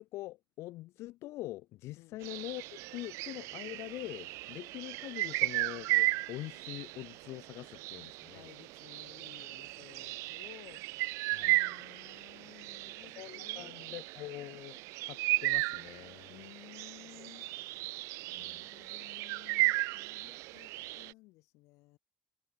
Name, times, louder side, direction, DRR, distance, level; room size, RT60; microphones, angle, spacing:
voice 1, 0.0-2.6 2.9-8.5 11.3-11.6 13.2-16.4 18.4-18.7, left 17 dB, 70° left, 5.6 m, -44 dB
sound 1, 2.2-21.1, right 21 dB, 85° right, 0.6 m, -35 dB
voice 2, 8.3-10.8 11.4-14.1 16.3-17.5 18.3-22.0, left 21 dB, 90° left, 7.9 m, -56 dB
cardioid pair, 170°, 5 cm